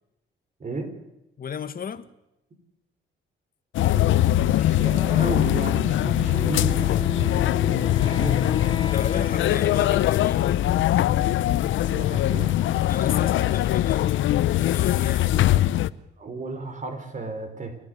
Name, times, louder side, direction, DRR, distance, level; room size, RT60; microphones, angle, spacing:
voice 1, 0.6-0.9 3.9-4.2 4.6-9.1 9.3-9.4 11.8-12.6 15.3-15.7 16.2-17.8, right 3 dB, 40° right, 6 dB, 5.1 m, -34 dB
voice 2, 1.4-2.1 8.9-10.7 12.9-14.1 14.6-15.7, left 7 dB, 45° left, 12 dB, 1.6 m, -34 dB
sound 1, 3.7-15.9, left 13 dB, 75° left, 0.7 m, -22 dB
Wind instrument woodwind instrument, 6.2-11.0, left 5 dB, 25° left, 0.7 m, -35 dB
29.5 x 11.0 x 9.7 m, 0.89 s
cardioid pair, 90°, 20 cm